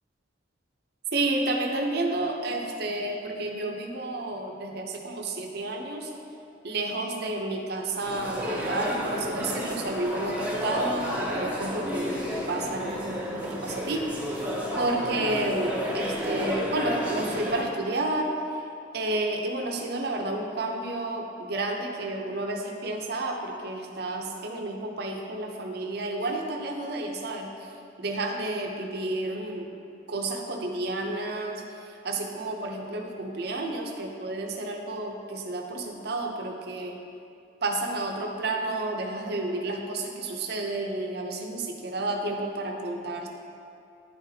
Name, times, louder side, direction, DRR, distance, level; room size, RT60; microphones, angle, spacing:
voice 1, 1.1-6.1 6.6-14.2 14.8-18.3 18.9-27.5 28.0-29.7 30.1-31.6 32.0-37.0 37.6-43.3, right 2 dB, 55° right, 2 dB, 0.6 m, -31 dB
sound 1, 8.0-17.6, equal, 10° right, 0.7 m, -31 dB
9.9 x 4.0 x 2.7 m, 2.6 s
head